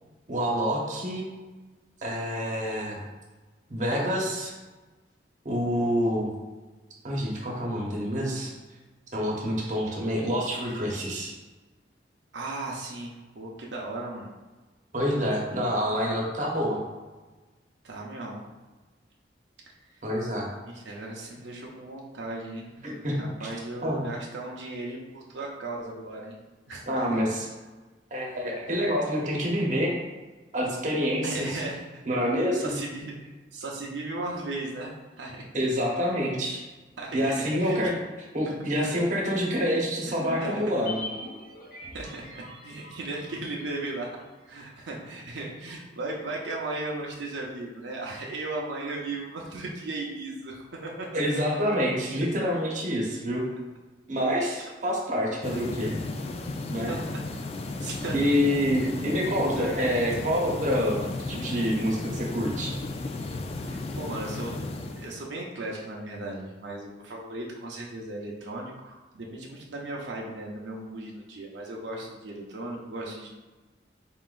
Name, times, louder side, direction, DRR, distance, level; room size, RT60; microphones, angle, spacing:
voice 1, 0.3-1.2 2.0-3.0 3.7-4.5 5.4-6.3 7.0-8.5 9.1-11.3 14.9-16.8 20.0-20.5 22.8-23.5 23.8-24.0 26.9-27.5 28.1-30.0 30.5-31.5 32.1-32.8 35.5-36.6 37.1-37.9 38.3-41.0 51.1-53.5 54.1-55.9 56.7-56.9 58.1-62.8, equal, 45° right, -2 dB, 0.9 m, -27 dB
voice 2, 12.3-14.3 17.8-18.4 20.7-22.7 23.2-26.4 26.7-27.3 31.2-32.3 32.6-35.5 37.0-38.0 38.4-38.6 40.0-40.6 41.9-44.1 44.5-51.2 55.5-55.6 56.9-57.2 57.5-58.4 59.6-59.8 63.7-64.7 65.0-73.3, right 2 dB, 85° right, -2 dB, 0.6 m, -36 dB
sound 1, 40.1-44.6 44.8-44.9, left 2 dB, 55° left, 0.9 m, -42 dB
sound 2, 55.4-65.2, left 2 dB, 35° left, 0.3 m, -34 dB
4.2 x 3.8 x 2.5 m, 1.2 s
head